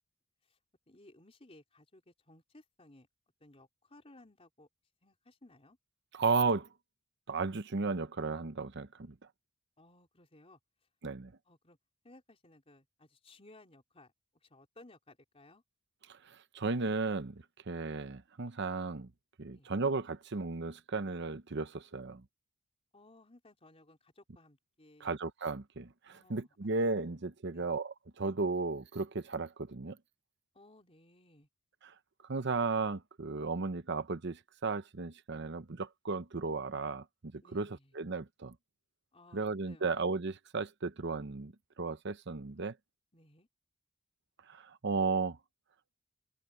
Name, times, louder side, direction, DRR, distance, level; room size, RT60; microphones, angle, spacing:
voice 1, 0.9-3.1 3.4-4.7 5.0-5.8 9.8-10.6 11.5-11.8 12.0-14.1 14.4-15.6 19.4-19.7 22.9-25.1 26.1-26.6 27.5-27.7 30.5-31.5 37.4-37.9 39.1-39.9 43.1-43.5, left 2 dB, 30° left, 3.9 m, -60 dB
voice 2, 6.1-6.7 7.3-9.1 11.0-11.3 16.1-19.1 19.4-22.2 25.0-30.0 31.8-31.9 32.3-37.0 37.3-38.5 39.3-42.7 44.5-45.4, right 4 dB, 60° right, 0.8 m, -35 dB
head